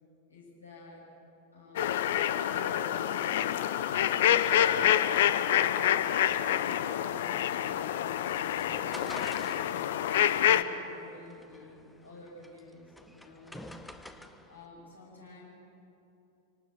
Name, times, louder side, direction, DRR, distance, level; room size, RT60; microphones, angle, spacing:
voice 1, 0.3-1.1 1.5-1.9 2.4-3.4 4.1-9.8 10.3-13.7 14.5-15.5, left 2 dB, 80° left, -4 dB, 7.9 m, -50 dB
sound 1, 1.8-10.6, left 10 dB, 55° left, 0.9 m, -27 dB
sound 2, 8.1-14.6, left 1 dB, 5° left, 1.1 m, -49 dB
26.0 x 19.0 x 8.5 m, 2.9 s
figure-of-eight pair, 90°, 0 cm